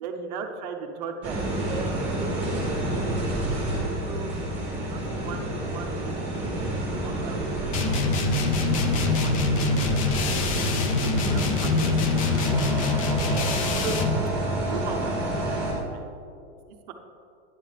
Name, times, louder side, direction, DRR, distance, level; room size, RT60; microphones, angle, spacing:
voice 1, 0.0-3.3 4.0-4.4 4.9-7.5 7.8-10.8 11.2-14.4 14.6-16.1 16.9-17.0, right 5 dB, 40° right, 4 dB, 0.7 m, -38 dB
sound 1, 1.2-15.7, right 1 dB, 5° right, 1.9 m, -29 dB
sound 2, 7.7-14.2, left 3 dB, 30° left, 0.4 m, -25 dB
10.0 x 7.1 x 3.3 m, 2.5 s
supercardioid pair, 165°, 35 cm